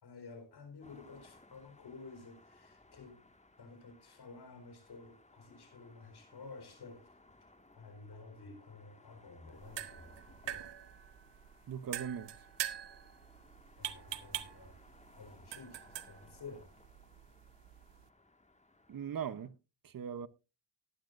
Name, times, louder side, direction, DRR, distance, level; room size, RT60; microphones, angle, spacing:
voice 1, 0.0-3.2 3.6-7.1 7.8-10.7 13.8-14.7 15.1-16.7, left 4 dB, 65° left, 4.2 m, -52 dB
sound 1, 0.8-19.5, left 2 dB, 15° left, 1.8 m, -63 dB
sound 2, 9.5-18.1, right 11 dB, 85° right, 1.0 m, -45 dB
voice 2, 11.7-12.5 18.9-19.6 19.8-20.3, right 8 dB, 55° right, 0.8 m, -40 dB
15.5 x 12.0 x 2.5 m
cardioid pair, 80°, 41 cm